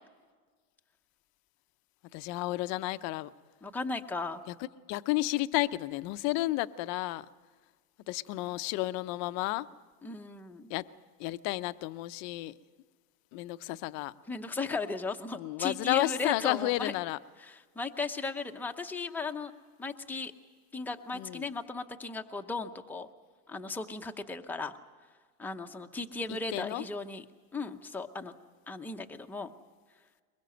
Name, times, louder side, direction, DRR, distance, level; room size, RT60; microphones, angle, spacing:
voice 1, 2.1-3.3 4.9-7.2 8.1-9.6 10.7-10.8 11.2-12.5 13.3-14.1 15.4-17.2 21.1-21.5 26.5-26.8, left 18 dB, 40° left, 13 dB, 0.6 m, -32 dB
voice 2, 3.6-4.4 10.0-10.7 14.3-16.9 17.4-19.5 19.8-20.3 20.7-23.1 23.5-24.7 25.4-27.2 27.5-28.3 28.7-29.5, left 3 dB, 5° left, 4 dB, 0.7 m, -36 dB
23.0 x 21.5 x 7.8 m, 1.5 s
supercardioid pair, 155°, 44 cm